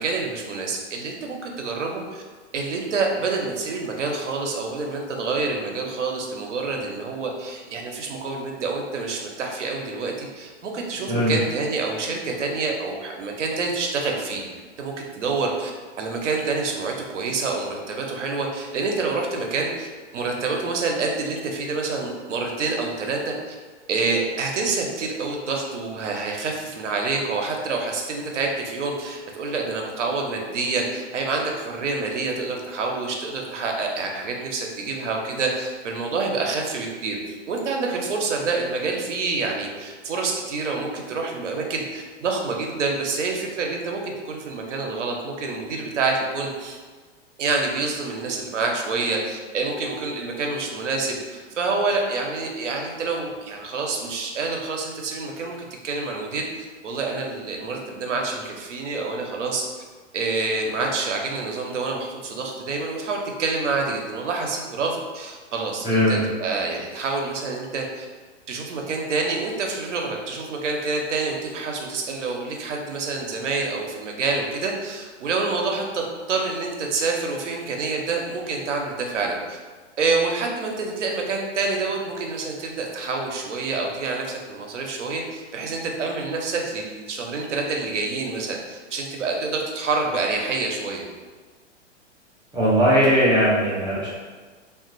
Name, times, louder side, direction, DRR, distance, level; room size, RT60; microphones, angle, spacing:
voice 1, 0.0-2.2 2.5-14.4 14.8-15.7 16.0-23.6 23.9-46.8 47.4-55.6 55.8-56.5 56.8-59.8 60.1-68.1 68.5-79.6 80.0-91.0, right 3 dB, 75° right, 1 dB, 0.6 m, -27 dB
voice 2, 65.8-66.2 92.5-94.1, equal, 10° right, -8 dB, 0.5 m, -19 dB
2.9 x 2.4 x 2.5 m, 1.4 s
figure-of-eight pair, 105°, 36 cm